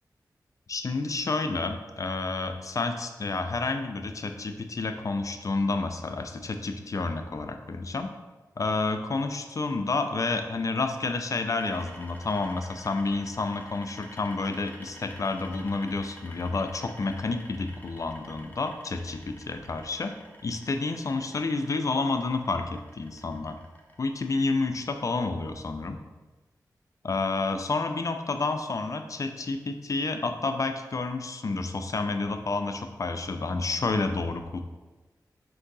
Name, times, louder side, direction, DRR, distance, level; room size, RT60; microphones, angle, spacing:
voice 1, 0.7-8.1 8.6-20.1 20.4-23.6 24.0-26.0 27.0-34.6, left 3 dB, 50° left, 7 dB, 0.4 m, -30 dB
sound 1, 11.6-24.8, equal, 25° left, 0.7 m, -51 dB
3.6 x 2.6 x 3.9 m, 1.2 s
cardioid pair, 45°, 7 cm